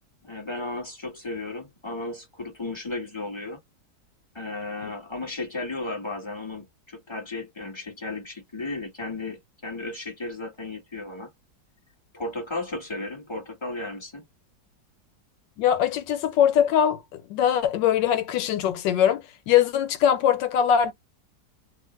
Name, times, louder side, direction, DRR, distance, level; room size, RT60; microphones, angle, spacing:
voice 1, 0.2-3.6 4.3-11.3 12.1-14.2, left 2 dB, 15° left, 1.4 m, -34 dB
voice 2, 15.6-20.9, left 9 dB, 85° left, 1.3 m, -22 dB
2.8 x 2.4 x 3.1 m
omnidirectional pair, 1.9 m